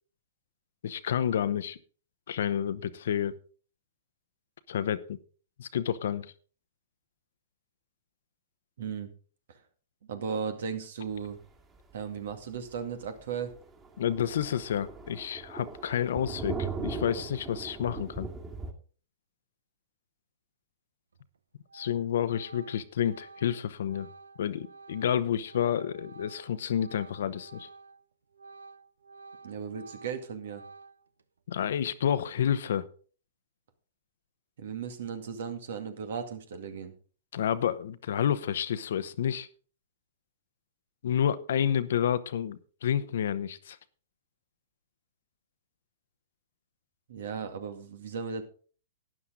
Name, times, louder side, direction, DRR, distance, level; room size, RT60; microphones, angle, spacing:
voice 1, 0.8-1.8 2.3-3.3 4.7-5.2 5.6-6.3 14.0-18.3 21.7-24.1 24.4-27.7 31.5-32.9 37.3-39.5 41.0-43.8, left 9 dB, 70° left, 0.9 m, -29 dB
voice 2, 8.8-9.1 10.1-11.4 11.9-13.5 29.4-30.6 34.6-36.9 47.1-48.4, right 6 dB, 65° right, 2.1 m, -36 dB
Thunder, 11.8-11.9 12.3-12.4 12.8-12.9 13.2-13.3 13.5-18.7, right 4 dB, 20° right, 2.5 m, -39 dB
Organ, 21.1-21.4 21.7-28.0 28.3-31.2, right 4 dB, 85° right, 0.8 m, -51 dB
12.5 x 9.7 x 3.9 m
hypercardioid pair, 120°, 0 cm